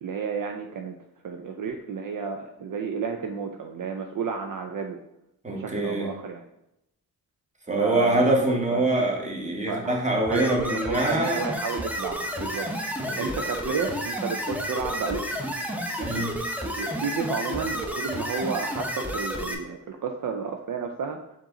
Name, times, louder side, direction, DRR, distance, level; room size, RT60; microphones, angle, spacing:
voice 1, 0.0-1.0 1.2-5.0 5.5-6.4 7.8-8.4 8.7-8.9 9.7-10.0 10.2-12.7 13.2-15.2 16.0-16.2 16.6-21.2, right 5 dB, 60° right, 4 dB, 0.5 m, -32 dB
voice 2, 5.4-6.1 7.7-11.4 13.0-13.3 16.0-16.3, right 1 dB, 20° right, 0 dB, 1.1 m, -25 dB
sound 1, 10.3-19.5, equal, 5° right, 0.7 m, -31 dB
4.5 x 2.9 x 3.8 m, 0.83 s
cardioid pair, 60°, 37 cm